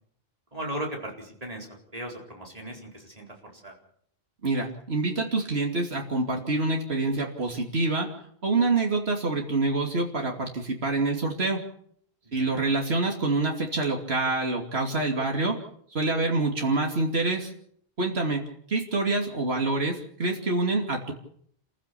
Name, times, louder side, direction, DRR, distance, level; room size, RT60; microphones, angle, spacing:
voice 1, 0.5-1.7 1.9-3.3 3.5-3.7 12.3-12.5, right 1 dB, 35° right, 0 dB, 4.6 m, -36 dB
voice 2, 4.4-8.1 8.4-11.6 12.3-15.6 15.9-17.5 18.0-18.4 18.7-21.1, right 3 dB, 75° right, 1 dB, 3.0 m, -26 dB
29.0 x 15.0 x 7.0 m, 0.64 s
omnidirectional pair, 1.1 m